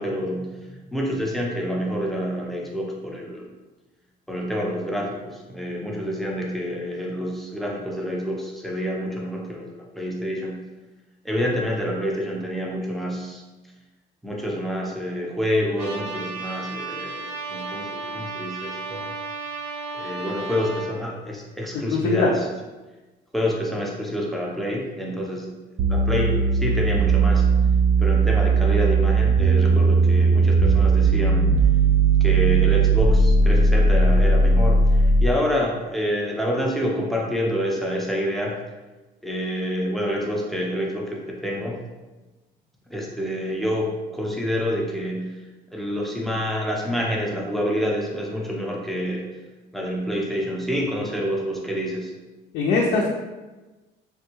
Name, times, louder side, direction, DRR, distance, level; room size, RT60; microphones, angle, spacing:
voice 1, 0.0-3.5 4.3-10.6 11.2-13.4 14.2-19.1 19.9-22.5 23.3-25.5 25.9-27.4 28.0-31.6 32.2-38.6 39.2-41.8 42.9-45.3 45.7-49.3 49.7-52.1, equal, ahead, -2 dB, 0.6 m, -27 dB
Trumpet, 15.8-20.9, right 3 dB, 90° right, 0.7 m, -33 dB
voice 2, 21.9-22.3 52.5-53.1, left 4 dB, 80° left, -2 dB, 0.5 m, -21 dB
sound 1, 25.8-35.4, right 3 dB, 60° right, 0.4 m, -18 dB
3.4 x 2.3 x 3.0 m, 1.2 s
cardioid pair, 110°, 17 cm